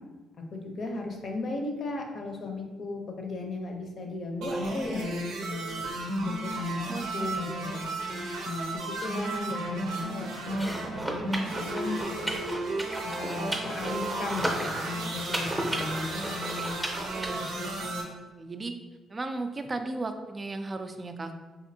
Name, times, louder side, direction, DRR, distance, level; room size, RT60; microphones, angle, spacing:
voice 1, 0.5-5.9 6.2-7.9 8.5-12.5 13.2-16.7 17.5-18.0, left 3 dB, 55° left, 2 dB, 0.6 m, -36 dB
sound 1, 4.4-18.0, right 2 dB, 90° right, 0.6 m, -34 dB
voice 2, 6.8-7.3 8.0-8.6 17.0-17.7 18.4-18.7 19.1-21.3, right 2 dB, 30° right, 7 dB, 0.3 m, -36 dB
sound 2, 10.5-17.3, equal, 10° right, 0.7 m, -34 dB
4.1 x 2.6 x 2.7 m, 1.2 s
cardioid pair, 90°, 0 cm